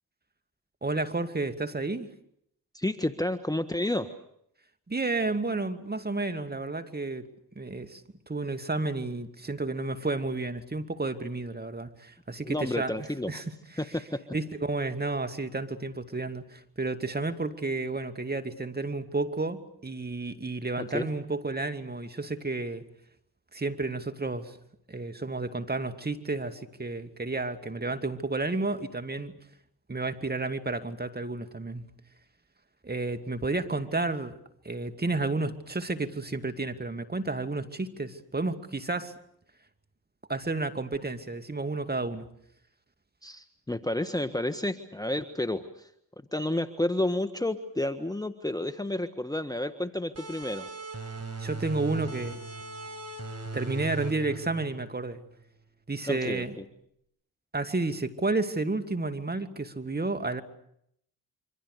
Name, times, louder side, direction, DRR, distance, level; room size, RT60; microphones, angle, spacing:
voice 1, 0.8-2.1 4.9-7.3 7.6-8.0 8.3-13.5 14.3-22.8 23.5-24.6 24.9-29.3 29.9-31.8 32.8-34.3 34.6-39.1 40.3-42.3 51.4-52.4 53.5-55.2 55.9-56.5 57.5-60.4, right 3 dB, 25° right, 2.6 m, -31 dB
voice 2, 2.7-4.1 12.4-13.3 13.8-14.2 20.9-21.1 43.2-45.9 46.3-50.7 56.1-56.6, left 1 dB, 10° left, 1.5 m, -30 dB
sound 1, 50.2-55.4, right 3 dB, 40° right, 4.9 m, -39 dB
27.5 x 25.0 x 6.8 m
hypercardioid pair, 45°, 41 cm